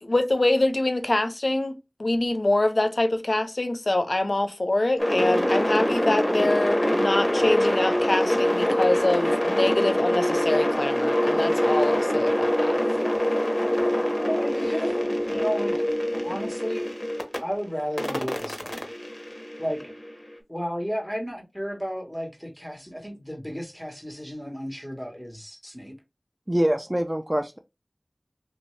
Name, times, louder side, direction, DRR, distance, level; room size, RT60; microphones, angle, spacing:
voice 1, 0.0-12.8, left 2 dB, 70° left, 0.4 m, -25 dB
sound 1, 5.0-17.4 18.0-20.1, equal, 25° left, 0.8 m, -24 dB
voice 2, 14.3-15.8 16.2-16.9 17.4-18.8 19.6-19.9 20.5-25.9, equal, 5° right, 1.3 m, -33 dB
voice 3, 26.5-27.6, right 1 dB, 25° right, 0.4 m, -24 dB
3.2 x 2.6 x 3.1 m
wide cardioid pair, 40°, 0 cm